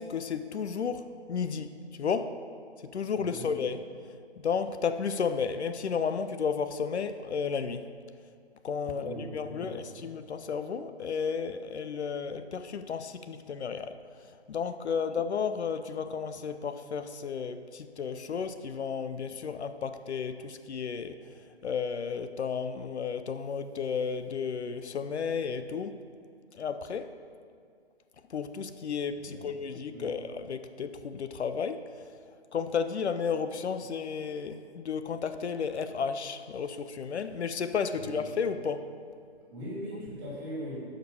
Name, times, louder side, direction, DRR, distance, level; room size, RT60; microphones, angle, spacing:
voice 1, 0.0-2.4 2.8-8.0 8.6-26.1 26.5-27.2 28.3-39.0, left 6 dB, 75° left, 0.6 m, -33 dB
voice 2, 3.1-3.5 8.9-9.8 29.1-29.4 29.9-30.1 37.9-38.1 39.5-40.8, equal, 20° right, 2.5 m, -40 dB
11.0 x 5.1 x 5.4 m
hypercardioid pair, 170°, 33 cm